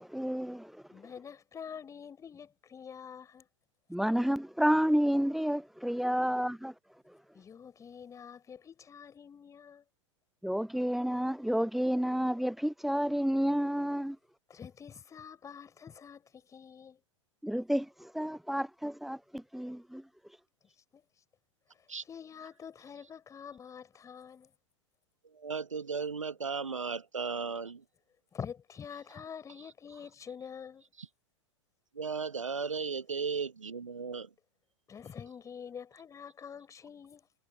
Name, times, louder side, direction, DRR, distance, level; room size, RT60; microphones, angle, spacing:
voice 1, 0.0-0.8 3.9-6.7 7.1-7.2 10.4-14.2 17.4-20.1, equal, ahead, 0.4 m, -30 dB
voice 2, 0.9-3.5 7.3-9.8 14.5-17.0 20.9-21.0 22.1-24.5 28.3-30.8 34.9-37.3, left 7 dB, 20° left, 4.7 m, -46 dB
voice 3, 25.3-27.8 31.0-31.1 31.9-34.3, right 5 dB, 75° right, 1.4 m, -35 dB
figure-of-eight pair, 95°, 16 cm